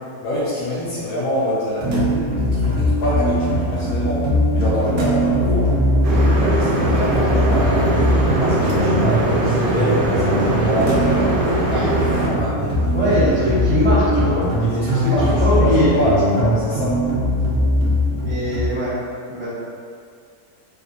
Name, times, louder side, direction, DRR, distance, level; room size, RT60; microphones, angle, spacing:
voice 1, 0.2-4.3 4.5-5.7 6.3-8.0 8.4-13.6 14.6-17.0, left 1 dB, 75° left, -8 dB, 1.0 m, -26 dB
sound 1, 1.8-18.7, equal, 65° right, 0.9 m, -20 dB
sound 2, 6.0-12.3, right 2 dB, 85° right, 0.4 m, -21 dB
voice 2, 12.9-14.4 14.7-15.1 15.4-15.9 18.2-19.0 19.3-19.5, equal, 25° right, -17 dB, 0.9 m, -20 dB
3.5 x 2.2 x 2.6 m, 2.2 s
omnidirectional pair, 1.6 m